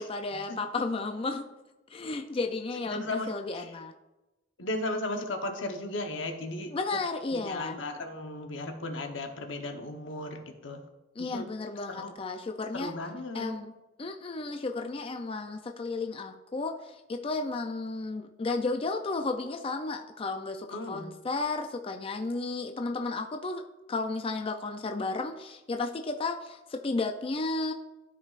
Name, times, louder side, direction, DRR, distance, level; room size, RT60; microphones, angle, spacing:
voice 1, 0.0-1.4 1.9-3.9 6.7-7.8 11.2-12.9 13.3-13.7 14.0-23.6 23.9-27.7, left 3 dB, 30° left, 4 dB, 0.4 m, -33 dB
voice 2, 2.9-3.3 3.5-3.7 4.6-6.7 7.3-10.8 11.2-11.4 11.9-12.1 12.7-13.6 20.7-21.1, left 2 dB, 85° left, 4 dB, 1.0 m, -35 dB
12.5 x 5.3 x 2.5 m, 1.0 s
head